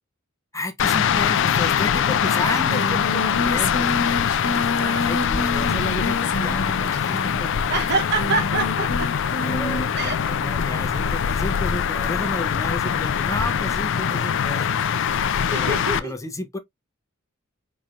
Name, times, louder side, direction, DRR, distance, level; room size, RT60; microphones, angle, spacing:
voice 1, 0.5-7.5 9.4-15.0 15.5-16.6, left 2 dB, 15° left, 0.6 m, -32 dB
sound 1, 0.8-16.0, left 7 dB, 60° left, 0.4 m, -23 dB
Singing, 2.3-10.0, left 2 dB, 85° left, 1.2 m, -29 dB
voice 2, 4.7-5.1 7.7-9.1 9.9-10.1 15.5-16.1, right 3 dB, 50° right, 0.9 m, -26 dB
4.4 x 3.1 x 2.4 m
head